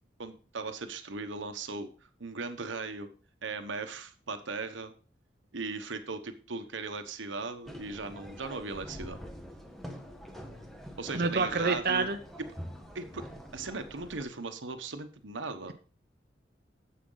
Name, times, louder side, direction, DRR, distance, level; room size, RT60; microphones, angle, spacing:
voice 1, 0.2-1.9 2.2-3.1 3.4-4.9 5.5-9.2 11.0-12.1 12.4-12.5 12.9-15.7, right 3 dB, 90° right, 8 dB, 1.1 m, -38 dB
sound 1, 7.6-14.2, equal, ahead, 1.2 m, -45 dB
voice 2, 11.1-12.2, right 4 dB, 50° right, 4 dB, 0.9 m, -27 dB
10.5 x 7.5 x 3.9 m, 0.37 s
head